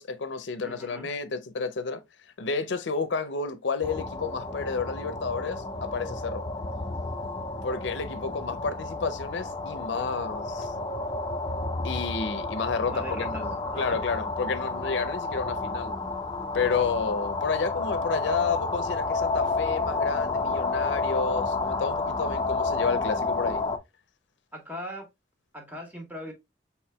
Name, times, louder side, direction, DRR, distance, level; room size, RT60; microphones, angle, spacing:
voice 1, 0.0-2.0 2.4-6.4 7.6-10.7 11.8-15.9 16.5-23.6, left 4 dB, 80° left, 0.6 m, -30 dB
voice 2, 0.6-1.1 12.9-13.4 13.7-14.0 24.5-25.1 25.5-26.3, equal, 10° right, 1.4 m, -39 dB
sound 1, 3.8-23.8, left 3 dB, 25° left, 0.6 m, -31 dB
5.6 x 4.3 x 2.2 m
head